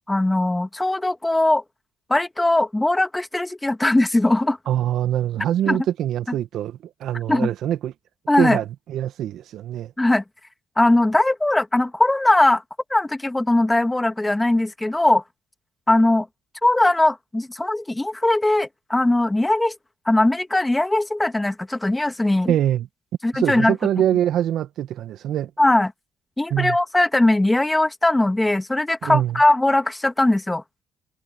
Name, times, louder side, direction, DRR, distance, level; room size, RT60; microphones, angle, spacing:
voice 1, 0.1-1.6 2.1-4.6 5.7-5.8 7.3-7.5 8.3-8.6 10.0-10.2 10.8-12.6 12.9-15.2 15.9-16.3 16.6-19.7 20.1-22.5 23.2-23.7 25.6-25.9 26.4-30.6, left 1 dB, 15° left, 2.8 m, -20 dB
voice 2, 4.6-7.9 8.4-9.9 22.5-22.9 23.3-25.5 26.5-26.8 29.0-29.4, right 11 dB, 70° right, 1.8 m, -24 dB
supercardioid pair, 60°, 0 cm